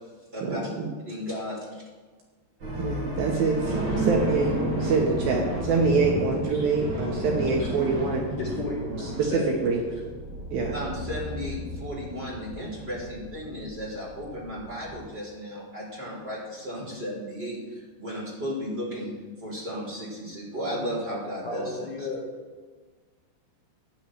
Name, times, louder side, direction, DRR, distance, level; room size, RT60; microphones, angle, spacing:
voice 1, 0.4-0.9 2.8-8.3 9.2-9.8 10.5-10.8, right 4 dB, 70° right, 2.6 m, -25 dB
voice 2, 1.0-1.8 10.7-19.1 19.4-22.1, equal, 15° right, 3.0 m, -34 dB
sound 1, 2.6-15.1, right 1 dB, 35° right, 3.9 m, -32 dB
voice 3, 8.4-10.0 21.4-22.4, left 2 dB, 45° left, 2.7 m, -35 dB
15.0 x 10.0 x 3.2 m
omnidirectional pair, 5.0 m